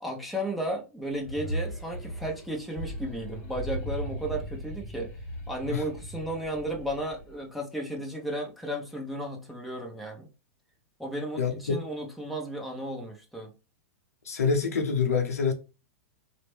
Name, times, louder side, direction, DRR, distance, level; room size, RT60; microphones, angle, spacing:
voice 1, 0.0-5.1 5.5-10.3 11.0-13.5, right 1 dB, ahead, 0.9 m, -34 dB
sound 1, 1.1-7.4, equal, 35° left, 1.0 m, -37 dB
voice 2, 11.4-11.8 14.3-15.5, left 5 dB, 80° left, 0.7 m, -26 dB
2.9 x 2.2 x 3.3 m
hypercardioid pair, 110°, 8 cm